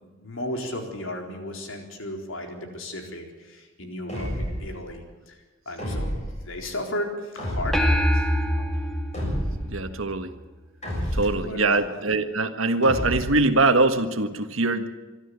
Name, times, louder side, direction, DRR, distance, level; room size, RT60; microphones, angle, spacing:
voice 1, 0.2-5.4 5.7-6.1 6.4-8.7 11.0-11.9, left 1 dB, 75° left, 3 dB, 4.1 m, -35 dB
sound 1, 4.1-4.8 5.8-6.4 7.4-8.1 9.1-9.8 10.8-11.5 12.8-13.5, equal, 35° left, 7.0 m, -29 dB
sound 2, 7.7-10.4, equal, ahead, 2.1 m, -24 dB
voice 2, 9.7-10.3 11.1-14.9, right 2 dB, 80° right, 8 dB, 1.5 m, -22 dB
25.0 x 12.5 x 8.4 m, 1.3 s
head